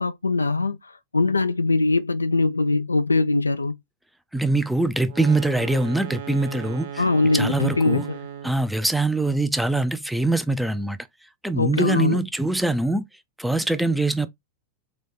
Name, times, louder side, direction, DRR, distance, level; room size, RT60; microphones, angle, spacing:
voice 1, 0.0-3.8 7.0-8.2 11.5-12.2, left 3 dB, 80° left, 0.3 m, -22 dB
voice 2, 4.3-7.0 7.3-8.1 8.4-11.0 11.4-13.0 13.4-14.3, right 2 dB, ahead, 0.5 m, -23 dB
sound 1, 5.0-8.7, right 8 dB, 55° right, 0.6 m, -36 dB
4.1 x 3.1 x 3.4 m
figure-of-eight pair, 90°, 0 cm